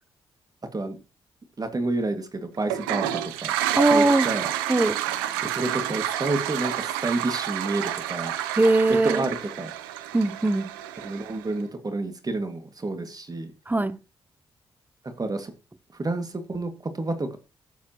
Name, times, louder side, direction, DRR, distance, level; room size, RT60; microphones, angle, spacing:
voice 1, 1.6-3.5 3.9-4.5 5.5-8.3 9.0-9.7 11.0-13.5 15.2-15.5 15.9-17.4, right 2 dB, 35° right, 2.0 m, -29 dB
Toilet flush, 2.6-11.5, right 12 dB, 90° right, 0.6 m, -29 dB
voice 2, 3.8-4.3 4.7-5.0 8.6-9.2 10.1-10.7 13.7-14.0, right 2 dB, 15° right, 0.8 m, -20 dB
14.0 x 7.4 x 3.0 m
hypercardioid pair, 40°, 11 cm